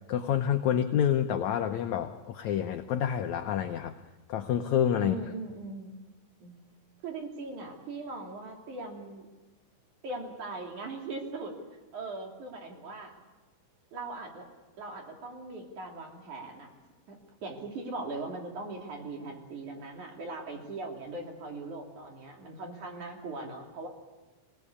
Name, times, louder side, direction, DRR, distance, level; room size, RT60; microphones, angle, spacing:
voice 1, 0.1-3.9 4.3-5.2, left 9 dB, 75° left, 6 dB, 1.8 m, -28 dB
voice 2, 5.0-5.9 6.4-6.5 7.0-9.3 10.0-11.5 11.9-13.1 13.9-14.5 14.8-16.7 17.1-23.9, right 3 dB, 55° right, 1 dB, 4.3 m, -40 dB
26.0 x 18.5 x 8.5 m, 1.2 s
omnidirectional pair, 4.3 m